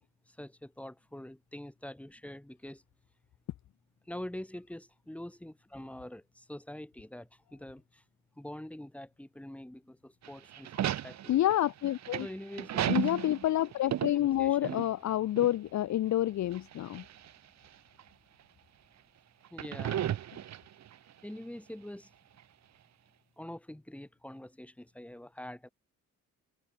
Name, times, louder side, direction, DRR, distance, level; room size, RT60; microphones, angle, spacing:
voice 1, 0.3-2.8 4.1-8.0 8.4-11.4 12.2-13.1 14.1-14.9 19.5-20.1 21.2-22.1 23.4-25.7, left 1 dB, 5° left, 3.0 m, -45 dB
sound 1, 10.2-15.1 15.4-15.5 16.5-17.3 18.0-18.1 19.5-20.9, right 11 dB, 60° right, 1.3 m, -34 dB
voice 2, 11.3-12.3 12.9-17.0, left 13 dB, 65° left, 0.9 m, -28 dB
cardioid pair, 90°, 30 cm